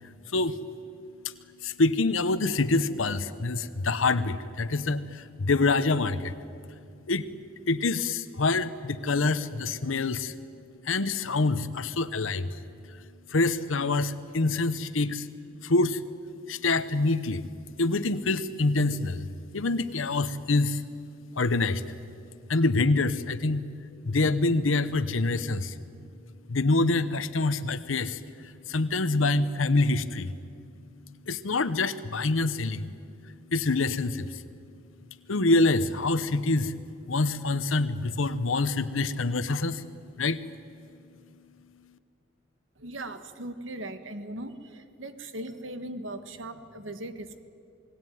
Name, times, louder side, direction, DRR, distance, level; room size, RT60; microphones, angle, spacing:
voice 1, 0.3-0.6 1.6-6.3 7.1-7.2 7.7-10.3 10.8-12.5 13.3-15.3 15.6-16.0 16.5-17.5 17.8-19.3 19.5-20.8 21.3-21.8 22.5-23.6 24.0-25.7 26.5-30.3 31.3-32.9 33.5-34.4 35.3-36.7 37.1-39.8 40.2-40.4, left 3 dB, 85° left, 11 dB, 1.0 m, -26 dB
voice 2, 42.8-47.4, right 1 dB, 75° right, 9 dB, 1.6 m, -39 dB
28.0 x 19.5 x 9.3 m, 2.5 s
head